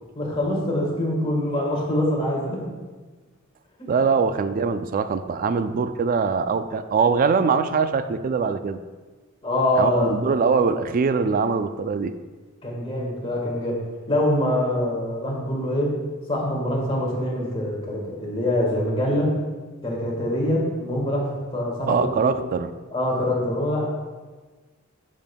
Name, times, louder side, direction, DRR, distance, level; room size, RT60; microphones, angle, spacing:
voice 1, 0.1-2.6 3.8-3.9 9.4-10.1 12.6-15.9 16.3-19.3 19.8-22.4 22.9-23.8, left 1 dB, 25° left, -3 dB, 1.6 m, -24 dB
voice 2, 3.9-8.8 9.8-12.1 21.9-22.7, right 5 dB, 40° right, 11 dB, 0.3 m, -22 dB
10.5 x 5.3 x 2.2 m, 1.3 s
head